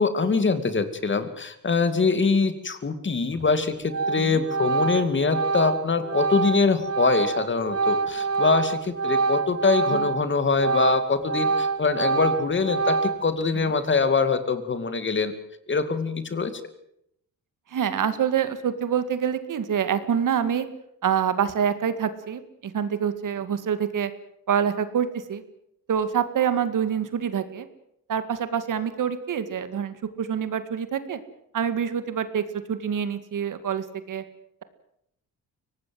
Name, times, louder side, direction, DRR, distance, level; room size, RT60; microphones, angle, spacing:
voice 1, 0.0-15.3 15.7-16.5, left 4 dB, 35° left, 11 dB, 2.5 m, -24 dB
Organ, 3.3-3.6 3.9-10.2 10.5-13.4, right 4 dB, 40° right, 2.0 m, -26 dB
voice 2, 17.7-20.7 21.0-24.1 24.5-25.4 25.9-27.7 28.1-31.2 31.5-34.2, right 8 dB, 60° right, 11 dB, 2.2 m, -26 dB
23.5 x 19.0 x 7.9 m, 0.75 s
cardioid pair, 120°, 35 cm